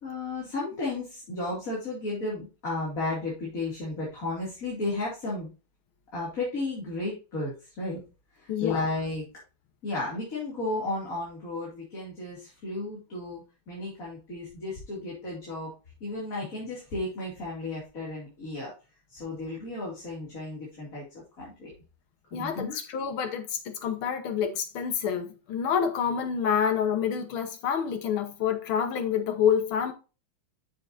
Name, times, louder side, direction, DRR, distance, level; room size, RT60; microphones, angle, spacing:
voice 1, 0.0-5.5 6.1-8.0 8.4-9.3 9.8-15.7 16.0-18.7 19.1-21.0 21.4-21.7 22.3-22.8, left 2 dB, 40° left, 2.9 m, -33 dB
voice 2, 8.5-8.8 22.3-29.9, left 8 dB, 80° left, 2.0 m, -28 dB
7.9 x 6.9 x 2.6 m
omnidirectional pair, 2.3 m